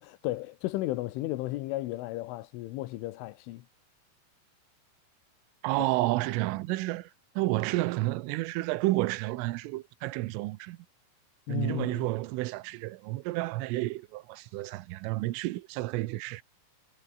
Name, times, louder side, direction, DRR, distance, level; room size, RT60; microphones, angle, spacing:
voice 1, 0.0-3.7 5.8-5.9 11.5-12.1, left 17 dB, 80° left, 3.5 m, -34 dB
voice 2, 5.6-7.1 7.4-10.8 11.5-16.4, right 19 dB, 85° right, 3.5 m, -30 dB
omnidirectional pair, 5.6 m